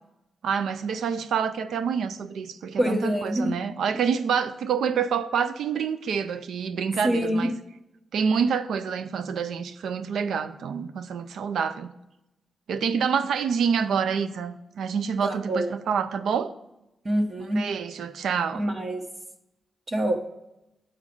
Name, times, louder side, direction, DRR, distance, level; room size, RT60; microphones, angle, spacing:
voice 1, 0.4-7.6 8.1-11.9 12.7-16.5 17.5-18.6, right 6 dB, 80° right, 0.5 m, -27 dB
voice 2, 2.8-3.5 7.0-7.5 15.2-15.7 17.0-17.7 18.5-19.1 19.9-20.2, equal, 45° right, 1.2 m, -25 dB
7.3 x 4.9 x 5.2 m
cardioid pair, 60°, 0 cm